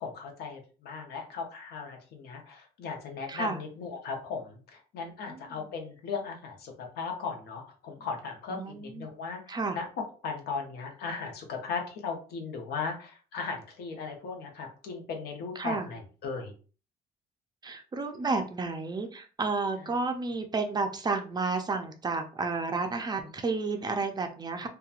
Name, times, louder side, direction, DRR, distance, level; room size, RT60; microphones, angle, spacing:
voice 1, 0.0-9.9 10.2-16.5 19.9-20.0, left 5 dB, 70° left, 2 dB, 0.7 m, -37 dB
voice 2, 3.3-3.6 5.3-5.7 8.5-9.1 9.5-9.8 15.6-15.9 17.6-24.7, right 3 dB, 25° right, 5 dB, 0.4 m, -31 dB
2.9 x 2.2 x 2.4 m, 0.37 s
cardioid pair, 110°, 17 cm